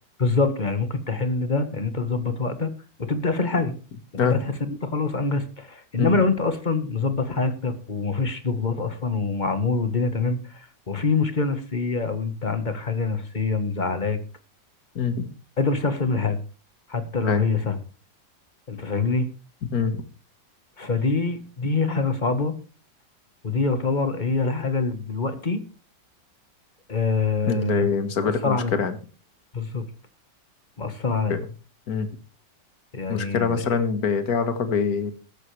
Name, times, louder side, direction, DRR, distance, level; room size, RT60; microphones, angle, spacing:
voice 1, 0.2-2.7 3.0-3.7 4.1-14.2 15.6-16.4 16.9-17.8 18.7-19.3 20.8-22.5 23.4-25.6 26.9-27.9 28.2-28.7 29.5-29.8 30.8-31.4 32.9-33.6, left 4 dB, 25° left, 9 dB, 1.4 m, -25 dB
voice 2, 15.0-15.3 17.2-17.4 19.7-20.0 27.4-29.0 31.3-31.4 31.9-32.1 33.1-35.1, left 5 dB, 55° left, 10 dB, 2.0 m, -24 dB
15.0 x 13.0 x 3.3 m, 0.34 s
omnidirectional pair, 2.0 m